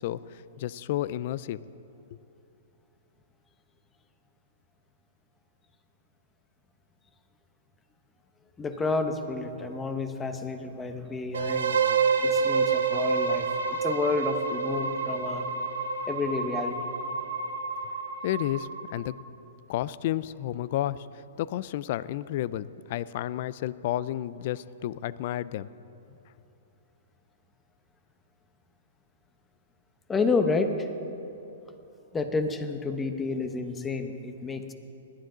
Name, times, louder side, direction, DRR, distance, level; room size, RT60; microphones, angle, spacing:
voice 1, 0.0-1.6 18.2-19.1 19.7-25.7, left 13 dB, 50° left, 18 dB, 0.4 m, -31 dB
voice 2, 8.6-15.5 16.1-16.8 30.1-30.9 32.1-34.7, left 3 dB, 10° left, 7 dB, 0.9 m, -30 dB
sound 1, 11.3-19.1, right 5 dB, 90° right, 1.1 m, -28 dB
20.5 x 11.5 x 3.9 m, 2.8 s
hypercardioid pair, 150°, 0 cm